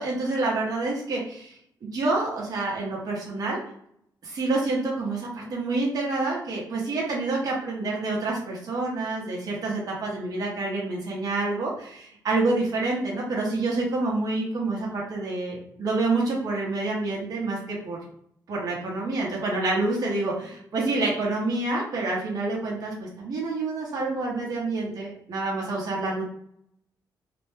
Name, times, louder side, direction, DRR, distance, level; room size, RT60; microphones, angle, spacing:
voice 1, 0.0-3.6 4.2-18.0 18.5-26.2, right 2 dB, 55° right, -3 dB, 0.8 m, -28 dB
2.6 x 2.1 x 3.1 m, 0.69 s
wide cardioid pair, 145°, 8 cm